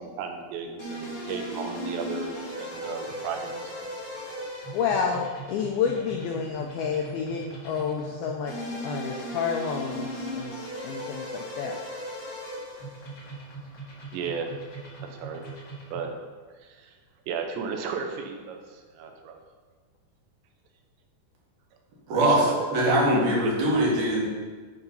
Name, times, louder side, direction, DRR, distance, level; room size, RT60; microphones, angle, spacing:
voice 1, 0.0-3.9 14.1-14.5 15.0-15.4 15.9-16.2 16.6-16.9 17.3-19.4 22.2-23.5, right 5 dB, 90° right, 4 dB, 3.1 m, -34 dB
sound 1, 0.8-16.1, equal, 60° left, 1.1 m, -38 dB
voice 2, 4.7-11.7, left 6 dB, 85° left, 1 dB, 2.1 m, -30 dB
voice 3, 22.1-22.4 22.7-24.3, right 1 dB, 60° right, -5 dB, 3.2 m, -22 dB
9.7 x 3.9 x 5.4 m, 1.4 s
omnidirectional pair, 5.1 m